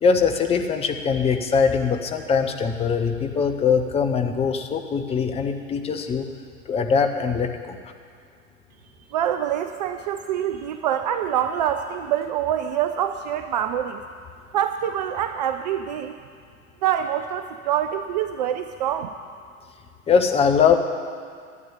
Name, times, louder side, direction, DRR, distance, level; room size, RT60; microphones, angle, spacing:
voice 1, 0.0-6.3 6.7-7.8 20.1-20.8, left 6 dB, 15° left, 5 dB, 0.8 m, -21 dB
voice 2, 9.1-14.0 14.5-16.2 16.8-19.1, right 10 dB, 30° right, 8 dB, 0.4 m, -25 dB
12.0 x 8.6 x 8.9 m, 2.2 s
figure-of-eight pair, 95°, 42 cm